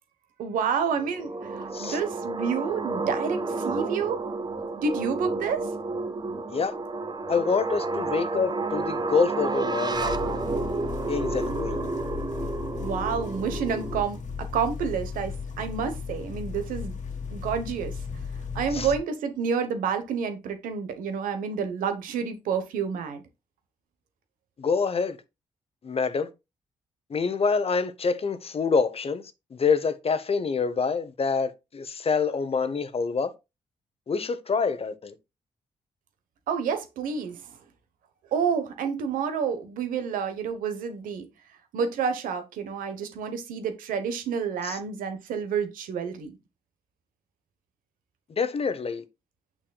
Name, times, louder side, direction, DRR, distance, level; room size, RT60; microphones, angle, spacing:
voice 1, 0.4-4.2 4.8-5.7 12.8-17.0 17.3-18.0 18.5-23.2 36.5-37.6 38.3-41.3 41.7-46.3, right 6 dB, 85° right, 1.1 m, -29 dB
sound 1, 1.0-14.0, right 3 dB, 30° right, 1.0 m, -31 dB
voice 2, 7.3-10.2 11.1-11.8 18.7-18.9 24.6-25.2 25.8-26.3 27.1-29.2 29.5-33.3 34.1-35.1 44.6-44.8 48.4-49.0, left 5 dB, 45° left, 0.9 m, -26 dB
sound 2, 9.9-19.0, left 5 dB, 65° left, 1.4 m, -35 dB
6.7 x 6.0 x 2.3 m
supercardioid pair, 55°, 14 cm